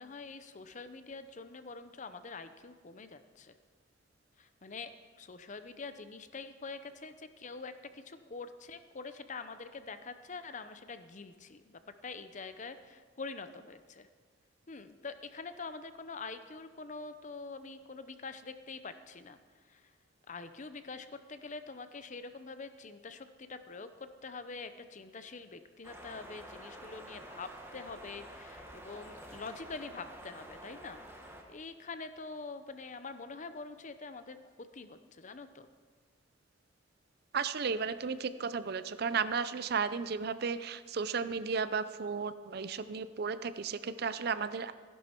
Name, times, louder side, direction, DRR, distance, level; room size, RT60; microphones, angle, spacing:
voice 1, 0.0-3.5 4.4-4.9 5.2-14.1 14.7-19.9 20.3-35.7, left 4 dB, 40° left, 10 dB, 0.6 m, -45 dB
sound 1, 25.8-31.4, right 1 dB, 10° right, 1.3 m, -49 dB
voice 2, 37.3-44.7, right 5 dB, 55° right, 13 dB, 0.5 m, -34 dB
15.0 x 11.0 x 4.5 m, 1.5 s
head